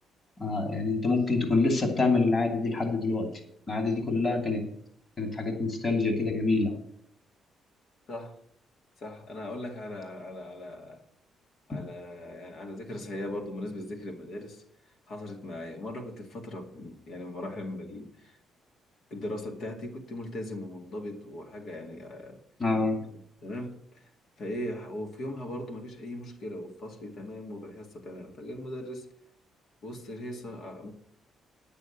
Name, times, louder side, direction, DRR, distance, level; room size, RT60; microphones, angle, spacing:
voice 1, 0.4-3.3 3.7-4.6 5.2-6.7 11.7-11.8 22.6-23.0, left 3 dB, 35° left, 2.6 m, -26 dB
voice 2, 8.1-8.4 9.0-11.0 11.7-14.6 15.1-18.4 19.1-22.4 23.0-24.0 24.4-29.1 29.8-30.9, left 1 dB, 65° left, 2.1 m, -39 dB
9.9 x 6.9 x 7.1 m
cardioid pair, 90°, 0 cm